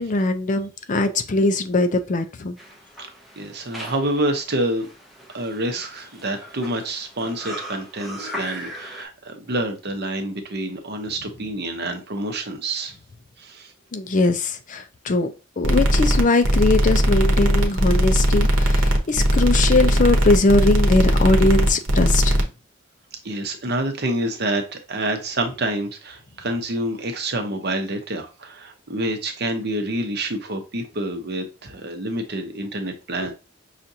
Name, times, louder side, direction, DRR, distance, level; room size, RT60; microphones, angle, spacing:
voice 1, 0.0-2.6 13.9-22.4, left 2 dB, 40° left, 0.4 m, -21 dB
sound 1, 2.6-9.1, equal, ahead, 0.7 m, -39 dB
voice 2, 3.4-4.9 5.3-12.9 13.4-13.7 23.2-33.3, right 1 dB, 55° right, 0.8 m, -27 dB
sound 2, 15.6-22.4, equal, 90° right, 0.9 m, -18 dB
5.7 x 2.5 x 2.7 m
head